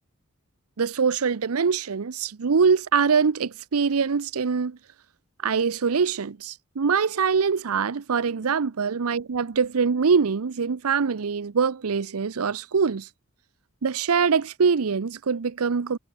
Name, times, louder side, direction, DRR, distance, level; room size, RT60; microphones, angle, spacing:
voice 1, 0.8-4.8 5.4-13.1 13.8-16.0, right 5 dB, 85° right, 0.6 m, -23 dB
head